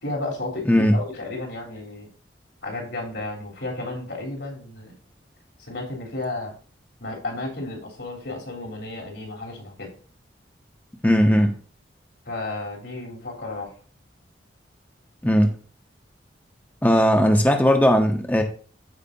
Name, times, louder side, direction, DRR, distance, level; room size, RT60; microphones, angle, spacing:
voice 1, 0.0-2.1 2.6-5.0 5.7-6.5 7.0-9.9 12.3-13.7, left 2 dB, 75° left, 3.7 m, -33 dB
voice 2, 11.0-11.6 15.2-15.5 16.8-18.4, equal, 10° left, 0.8 m, -18 dB
14.0 x 4.8 x 2.8 m
head